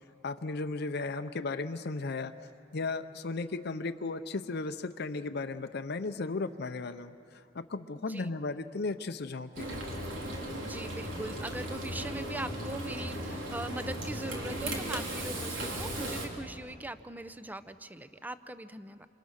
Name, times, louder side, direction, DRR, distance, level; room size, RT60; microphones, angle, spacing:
voice 1, 0.2-2.3 2.7-7.1 7.5-9.8, left 3 dB, 60° left, 8 dB, 0.7 m, -35 dB
voice 2, 7.9-8.3 10.6-19.1, right 1 dB, 10° right, 12 dB, 0.6 m, -41 dB
Frying (food), 9.6-16.3, right 1 dB, 85° right, 3.7 m, -36 dB
27.5 x 27.5 x 6.4 m, 2.6 s
head